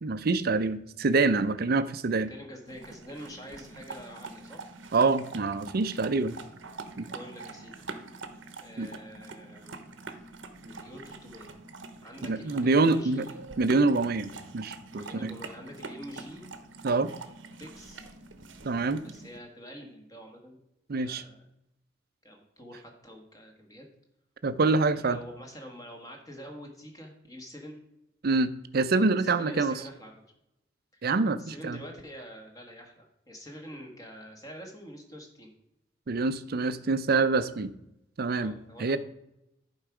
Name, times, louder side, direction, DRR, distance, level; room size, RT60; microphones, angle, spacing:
voice 1, 0.0-2.3 4.9-6.4 7.0-7.1 8.8-8.9 12.2-13.3 13.6-15.4 16.8-17.1 18.6-19.0 20.9-21.2 24.4-25.2 28.2-29.7 31.0-31.8 36.1-37.7 38.2-39.0, right 3 dB, 55° right, 13 dB, 0.5 m, -26 dB
voice 2, 2.3-4.6 7.1-7.9 8.6-9.8 10.6-11.6 12.0-13.4 15.0-16.4 17.6-18.1 19.0-20.6 21.0-21.5 22.2-23.9 24.9-27.8 29.2-30.1 30.9-31.0 31.4-35.5 38.3-39.0, equal, 20° left, 2 dB, 1.5 m, -46 dB
sound 1, 2.7-19.4, right 3 dB, 85° right, 0.9 m, -45 dB
11.0 x 4.6 x 4.9 m, 0.83 s
head